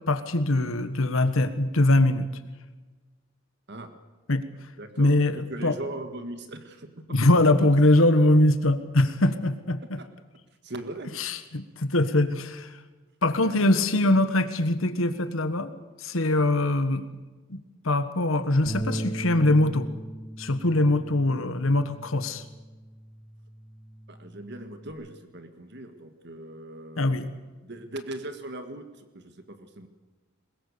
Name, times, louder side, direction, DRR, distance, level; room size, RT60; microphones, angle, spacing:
voice 1, 0.1-2.3 4.3-4.5 5.0-5.8 7.1-10.0 11.2-12.8 13.2-15.7 16.0-17.1 17.5-17.6 17.8-19.9 20.4-22.4 27.0-27.3, left 1 dB, 80° left, 10 dB, 1.5 m, -22 dB
voice 2, 4.8-7.0 10.0-10.1 10.6-11.1 13.4-13.8 24.1-27.3 27.6-29.9, right 1 dB, 55° right, 8 dB, 1.8 m, -39 dB
Bass guitar, 18.7-24.9, right 1 dB, 45° left, 3.6 m, -38 dB
22.0 x 21.0 x 7.0 m, 1.2 s
head